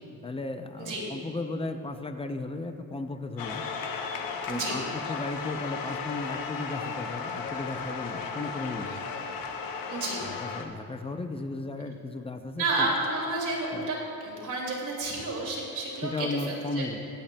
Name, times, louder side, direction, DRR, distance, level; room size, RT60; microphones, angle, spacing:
voice 1, 0.2-3.6 4.5-9.0 10.2-12.9 13.7-13.8 16.0-17.0, left 2 dB, 15° left, 7 dB, 0.5 m, -35 dB
sound 1, 3.4-10.7, left 5 dB, 70° left, 0.8 m, -35 dB
voice 2, 9.9-10.2 12.6-16.9, right 2 dB, 60° right, -3 dB, 2.4 m, -31 dB
23.0 x 8.6 x 2.2 m, 2.6 s
cardioid pair, 150°, 35 cm